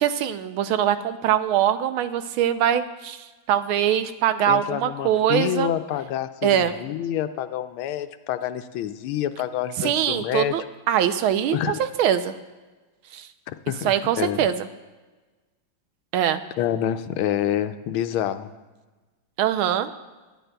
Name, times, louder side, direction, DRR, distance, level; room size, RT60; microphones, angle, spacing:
voice 1, 0.0-5.7 6.4-6.7 9.8-12.3 13.1-13.3 13.8-14.7 16.1-16.4 19.4-19.9, right 10 dB, 85° right, 11 dB, 1.5 m, -23 dB
voice 2, 4.5-10.6 11.5-11.8 13.5-14.5 16.6-18.5, left 11 dB, 90° left, 11 dB, 1.5 m, -27 dB
22.5 x 11.0 x 2.3 m, 1.2 s
omnidirectional pair, 2.2 m